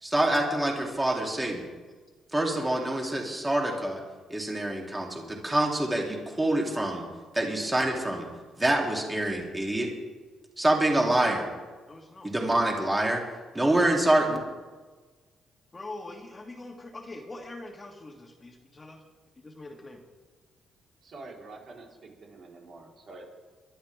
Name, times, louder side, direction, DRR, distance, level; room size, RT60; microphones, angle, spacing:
voice 1, 0.0-1.6 2.3-4.0 4.3-7.0 7.3-8.3 8.6-9.9 10.6-11.5 12.2-13.2 13.5-14.4, right 1 dB, 15° right, -1 dB, 3.2 m, -26 dB
voice 2, 10.7-11.2 11.9-12.3 13.9-14.4 15.7-19.0 19.4-20.0, left 2 dB, 25° left, 2 dB, 2.0 m, -44 dB
voice 3, 21.0-23.3, right 3 dB, 55° right, -2 dB, 4.3 m, -46 dB
23.0 x 12.0 x 3.6 m, 1.3 s
cardioid pair, 90°, 0 cm